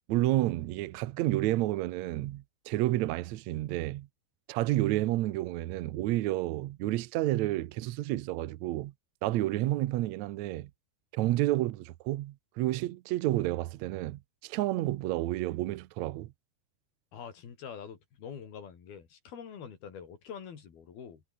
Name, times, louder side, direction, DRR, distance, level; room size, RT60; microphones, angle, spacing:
voice 1, 0.0-4.1 4.5-8.9 9.2-10.7 11.1-16.3, right 16 dB, 90° right, 1.6 m, -30 dB
voice 2, 17.1-21.2, left 7 dB, 75° left, 5.5 m, -45 dB
omnidirectional pair, 4.4 m